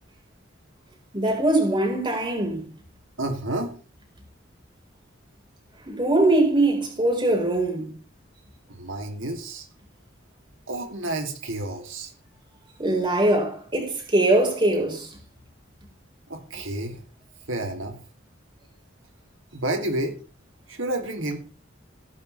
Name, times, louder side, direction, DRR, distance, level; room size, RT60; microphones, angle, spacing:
voice 1, 1.1-2.7 5.9-7.9 12.8-15.2, right 2 dB, 25° right, 4.7 m, -22 dB
voice 2, 3.2-3.7 8.7-9.7 10.7-12.1 16.3-17.0 17.5-18.0 19.5-20.2 20.7-21.4, right 1 dB, 75° right, 3.0 m, -30 dB
16.5 x 12.0 x 3.4 m
head